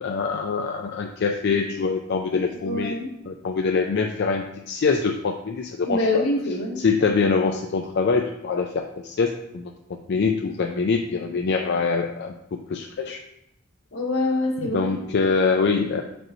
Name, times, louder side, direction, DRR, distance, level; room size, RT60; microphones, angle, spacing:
voice 1, 0.0-3.0 3.3-6.2 6.8-9.7 10.1-12.3 12.7-13.2 14.6-16.0, left 4 dB, 55° left, 3 dB, 0.4 m, -24 dB
voice 2, 2.6-3.1 5.8-6.8 13.9-14.9, left 2 dB, 80° left, -3 dB, 1.6 m, -25 dB
6.1 x 5.0 x 3.1 m, 0.84 s
head